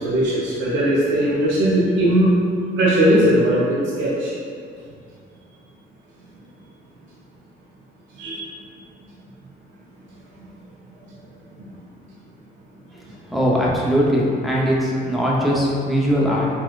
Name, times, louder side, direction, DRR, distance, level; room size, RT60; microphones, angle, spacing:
voice 1, 0.0-2.4 2.8-4.3 8.2-8.4, right 1 dB, 75° right, -8 dB, 0.6 m, -18 dB
voice 2, 13.3-16.5, equal, ahead, -6 dB, 0.6 m, -20 dB
4.0 x 2.2 x 2.3 m, 2.3 s
cardioid pair, 90°, 20 cm